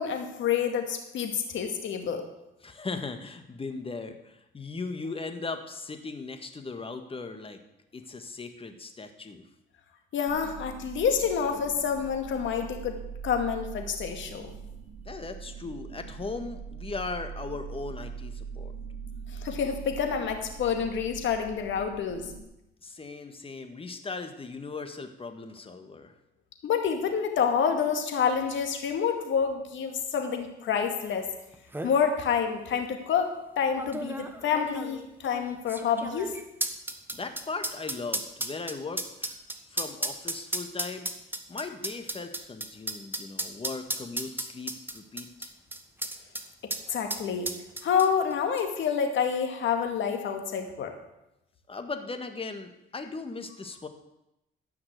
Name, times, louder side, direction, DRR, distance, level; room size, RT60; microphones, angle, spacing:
voice 1, 0.0-2.3 10.1-14.5 19.3-22.3 26.6-31.3 31.8-33.3 33.6-36.3 46.9-47.5 47.8-50.9, left 7 dB, 70° left, 5 dB, 2.2 m, -28 dB
voice 2, 2.6-7.6 7.9-9.4 15.1-18.7 22.8-26.1 37.1-39.3 39.7-41.1 41.5-45.5 51.7-53.9, left 3 dB, 30° left, 7 dB, 1.6 m, -38 dB
sound 1, 10.3-22.4, right 6 dB, 55° right, 3.4 m, -42 dB
sound 2, 31.2-31.3 31.5-31.9 32.7-32.8 33.8-46.4 46.7-46.8 47.1-48.3 48.6-48.7, right 1 dB, 10° right, 1.3 m, -34 dB
14.5 x 6.0 x 8.0 m, 0.90 s
cardioid pair, 90°, 20 cm